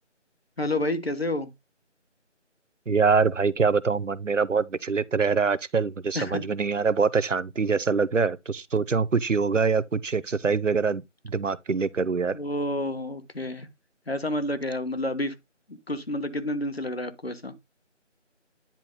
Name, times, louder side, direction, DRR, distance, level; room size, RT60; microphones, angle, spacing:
voice 1, 0.6-1.5 6.1-6.4 12.3-13.7 14.1-15.4 15.7-17.5, left 1 dB, 55° left, 1.5 m, -29 dB
voice 2, 2.9-12.3, right 5 dB, 80° right, 0.9 m, -24 dB
10.5 x 4.7 x 3.8 m
figure-of-eight pair, 180°, 37 cm